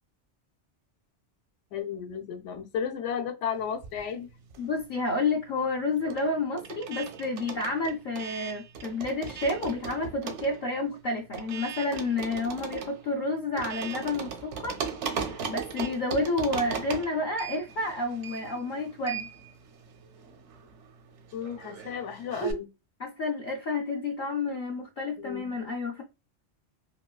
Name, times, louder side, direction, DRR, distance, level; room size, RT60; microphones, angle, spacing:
voice 1, 1.7-4.3 21.3-22.7 25.2-25.5, left 7 dB, 85° left, 0.9 m, -33 dB
sound 1, 3.7-5.0 5.2-22.5, right 6 dB, 80° right, 0.9 m, -38 dB
voice 2, 4.6-14.8 15.1-19.3 23.0-26.0, left 2 dB, 60° left, 0.5 m, -30 dB
3.7 x 2.2 x 2.3 m
omnidirectional pair, 1.2 m